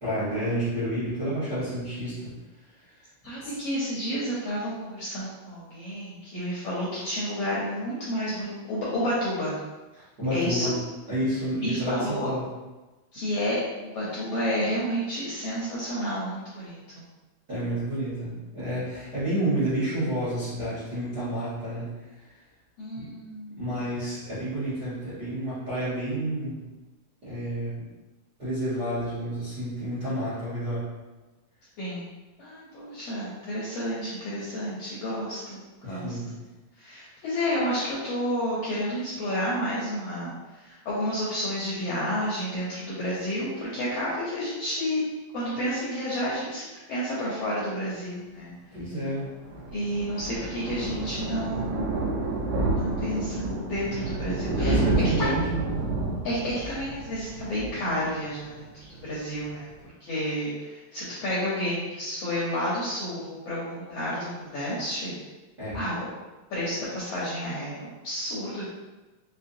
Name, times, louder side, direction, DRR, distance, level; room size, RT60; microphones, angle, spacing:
voice 1, 0.0-2.3 3.4-3.5 10.0-10.7 11.1-12.4 17.5-22.0 22.9-23.1 23.6-26.6 27.2-27.7 28.4-30.9 35.8-36.3 48.7-49.3 54.5-55.6 65.6-65.8, right 1 dB, 50° right, -13 dB, 1.2 m, -30 dB
voice 2, 3.2-9.6 10.3-10.7 11.5-12.3 13.1-17.0 22.8-23.6 31.8-32.1 32.4-36.2 36.8-40.3 40.6-45.0 45.3-48.5 49.7-51.9 52.8-54.8 55.2-55.3 56.2-59.7 60.0-65.1 65.7-66.0 66.5-68.6, equal, 75° left, -8 dB, 1.4 m, -30 dB
Thunder, 49.2-58.6 58.9-59.1 59.4-59.5 59.7-59.8, right 2 dB, 75° right, 2.0 m, -29 dB
5.5 x 2.0 x 2.6 m, 1.2 s
omnidirectional pair, 3.7 m